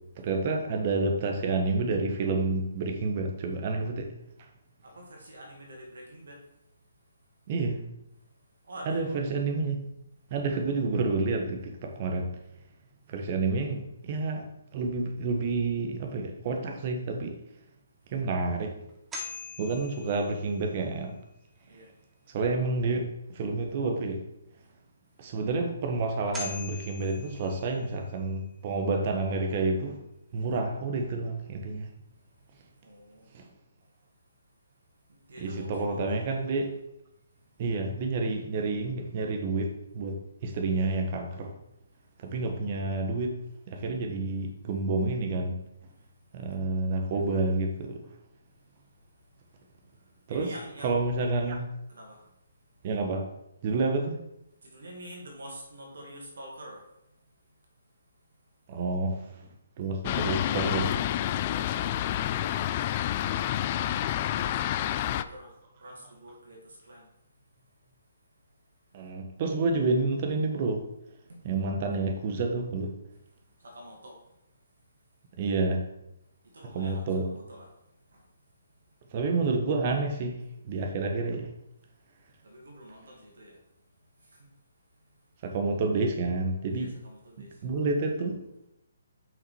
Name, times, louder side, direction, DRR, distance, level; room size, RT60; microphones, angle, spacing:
voice 1, 0.2-4.1 7.5-7.8 8.9-9.8 10.3-12.3 13.1-17.4 18.1-18.7 19.6-21.2 22.3-24.2 25.2-30.0 30.3-31.9 33.3-33.4 35.4-36.7 37.6-40.2 40.4-41.5 42.2-43.4 43.7-45.6 46.3-48.0 50.3-50.5 50.8-51.7 52.8-53.3 53.6-54.2 58.7-59.2 59.8-60.9 68.9-70.8 71.4-72.9 75.4-75.8 76.7-77.3 79.1-80.4 80.6-81.5 85.4-86.9 87.6-88.4, right 3 dB, 40° right, 3 dB, 1.4 m, -29 dB
voice 2, 4.8-6.4 8.6-9.2 21.7-21.9 32.8-33.3 35.3-36.3 47.1-47.3 50.3-51.0 51.9-52.2 54.6-56.8 61.5-61.7 64.2-65.5 65.8-67.1 71.3-71.4 73.6-74.2 76.5-77.7 78.1-78.2 82.4-83.6 86.7-88.0, equal, 70° right, 0 dB, 2.3 m, -46 dB
sound 1, 18.9-21.0 25.9-26.0 26.3-28.2, left 4 dB, 10° right, 1.1 m, -42 dB
Fixed-wing aircraft airplane, 60.0-65.2, left 12 dB, 35° left, 0.3 m, -29 dB
5.8 x 5.6 x 4.6 m, 0.84 s
figure-of-eight pair, 145°, 0 cm